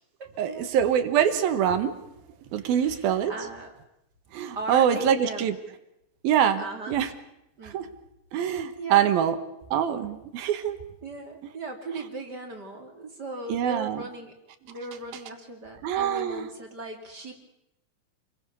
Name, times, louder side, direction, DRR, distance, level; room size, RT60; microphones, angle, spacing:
voice 1, 0.4-1.9 2.5-3.3 4.3-5.5 6.2-6.6 6.9-7.1 7.7-7.9 8.3-9.4 9.7-10.8 13.5-14.0 15.8-16.5, right 9 dB, 85° right, 9 dB, 3.3 m, -24 dB
voice 2, 2.6-3.7 4.5-5.6 6.6-7.0 7.6-7.8 8.8-9.1 11.0-14.3 14.7-17.3, right 2 dB, 30° right, 3 dB, 3.3 m, -38 dB
29.0 x 21.5 x 6.9 m, 0.85 s
omnidirectional pair, 4.1 m